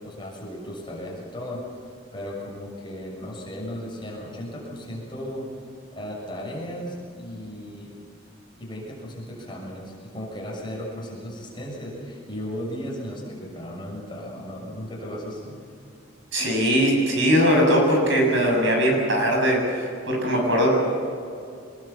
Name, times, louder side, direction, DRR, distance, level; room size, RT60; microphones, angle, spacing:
voice 1, 0.0-1.6 2.1-5.5 5.9-7.9 8.6-15.6, equal, 25° left, -3 dB, 6.6 m, -35 dB
voice 2, 16.3-20.8, equal, 65° right, 1 dB, 7.4 m, -20 dB
25.0 x 21.0 x 7.2 m, 2.5 s
head